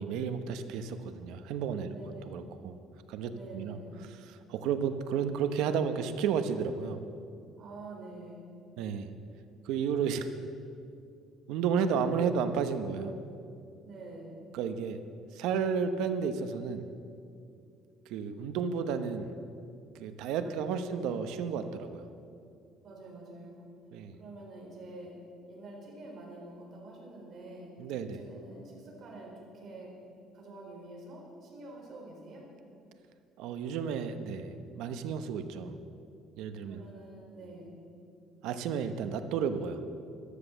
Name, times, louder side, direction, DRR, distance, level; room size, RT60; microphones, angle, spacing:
voice 1, 0.0-1.9 2.3-2.8 3.1-3.8 4.3-7.0 8.8-9.1 9.6-10.3 11.5-13.2 14.5-15.0 15.3-16.9 18.1-19.3 20.0-22.0 23.9-24.2 27.8-28.2 33.4-35.7 36.4-36.8 38.4-39.8, right 6 dB, 80° right, 9 dB, 1.0 m, -32 dB
voice 2, 1.8-2.2 3.3-4.0 7.6-8.4 13.8-14.3 20.4-21.1 22.8-23.6 24.2-25.2 25.5-27.7 28.0-29.9 30.3-32.4 36.6-37.8, right 2 dB, 45° right, -2 dB, 4.5 m, -47 dB
13.5 x 12.0 x 7.3 m, 2.5 s
cardioid pair, 150°, 0 cm